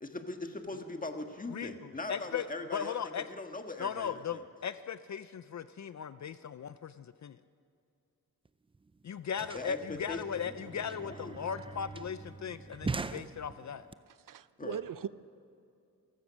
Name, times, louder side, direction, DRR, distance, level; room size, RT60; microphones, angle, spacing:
voice 1, 0.0-4.4 9.5-10.5 11.0-11.3 14.6-14.8, left 2 dB, 25° left, 5 dB, 1.6 m, -41 dB
voice 2, 1.5-2.5 2.7-3.3 3.8-7.4 9.1-13.9, left 7 dB, 55° left, 13 dB, 0.5 m, -38 dB
sound 1, 8.5-8.6 8.7-13.9, right 3 dB, 15° right, 0.4 m, -42 dB
voice 3, 14.1-15.1, right 8 dB, 65° right, 16 dB, 0.6 m, -40 dB
28.0 x 15.5 x 6.4 m, 2.4 s
wide cardioid pair, 145°, 34 cm